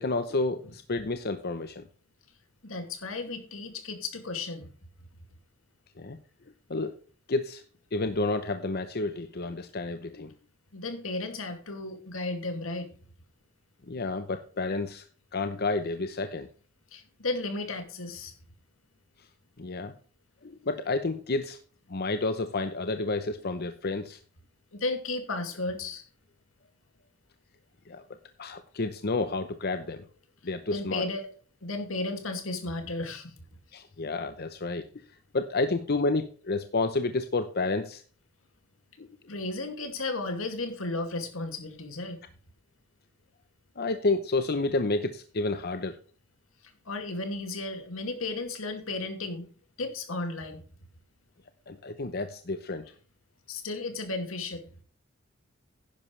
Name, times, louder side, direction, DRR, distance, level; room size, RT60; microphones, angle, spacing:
voice 1, 0.0-1.8 6.0-6.2 6.7-6.9 7.3-7.6 7.9-10.3 13.9-15.0 15.3-16.5 19.6-19.9 20.4-21.6 21.9-24.2 27.9-28.0 28.4-30.1 30.4-31.0 33.7-34.8 35.3-38.0 39.0-39.1 43.8-46.0 51.7-52.8, left 3 dB, 50° left, 9 dB, 0.8 m, -30 dB
voice 2, 2.6-4.7 10.7-12.9 16.9-18.3 24.7-26.1 30.7-31.3 31.6-33.3 39.3-42.2 46.6-49.5 49.8-50.6 53.5-54.7, left 2 dB, 80° left, 6 dB, 2.5 m, -34 dB
11.0 x 10.5 x 3.3 m, 0.42 s
head